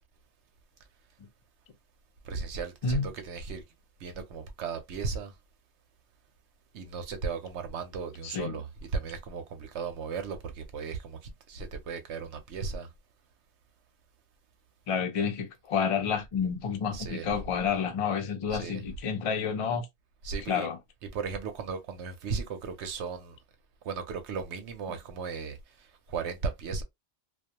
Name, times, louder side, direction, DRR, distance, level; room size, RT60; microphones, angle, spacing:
voice 1, 2.2-3.6 4.0-5.3 6.7-8.7 8.9-11.2 11.5-12.9 16.9-17.3 18.5-18.8 20.2-20.7 21.1-23.4 23.8-26.8, right 5 dB, 65° right, 0.8 m, -36 dB
voice 2, 8.2-8.6 14.9-19.9 20.5-20.8, left 6 dB, 55° left, 0.3 m, -29 dB
2.3 x 2.2 x 2.7 m
omnidirectional pair, 1.4 m